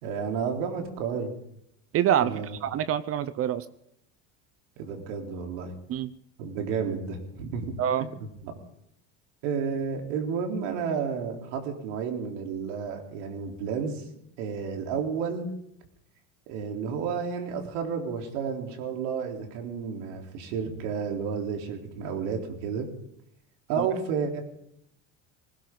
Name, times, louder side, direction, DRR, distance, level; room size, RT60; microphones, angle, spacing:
voice 1, 0.0-1.3 2.2-2.6 4.8-5.7 6.4-7.7 8.0-8.1 9.4-14.0 14.4-15.5 16.5-22.9 23.7-24.4, right 6 dB, 75° right, 2 dB, 3.9 m, -31 dB
voice 2, 1.9-3.6 5.9-6.1 7.8-8.1 23.8-23.9, right 10 dB, 40° right, 15 dB, 0.8 m, -26 dB
19.5 x 16.5 x 3.9 m, 0.76 s
supercardioid pair, 125°, 37 cm